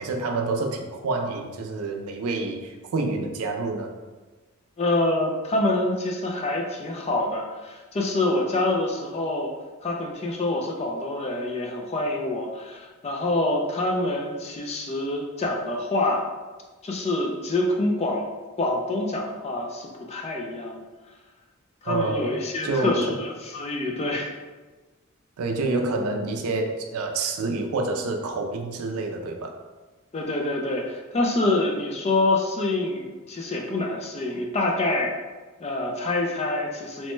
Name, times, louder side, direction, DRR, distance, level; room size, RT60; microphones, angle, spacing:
voice 1, 0.0-4.0 21.9-23.2 25.4-29.6, right 3 dB, 85° right, 3 dB, 0.4 m, -28 dB
voice 2, 4.8-9.5 9.8-16.3 16.8-18.3 18.6-20.8 21.8-24.3 30.1-35.1 35.6-37.1, left 2 dB, 30° left, 0 dB, 0.3 m, -26 dB
3.0 x 2.1 x 3.1 m, 1.3 s
head